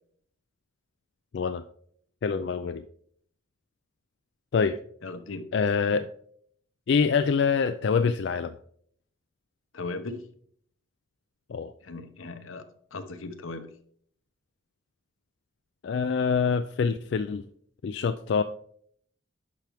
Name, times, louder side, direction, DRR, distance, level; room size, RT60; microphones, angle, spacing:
voice 1, 2.2-2.8 4.5-4.8 5.5-6.1 6.9-8.6 11.5-11.7 15.8-17.4 17.8-18.4, left 5 dB, 60° left, 9 dB, 0.3 m, -25 dB
voice 2, 5.0-5.4 9.7-10.2 11.8-12.6 12.9-13.7, left 3 dB, 85° left, 9 dB, 0.8 m, -37 dB
10.5 x 5.8 x 3.4 m, 0.63 s
head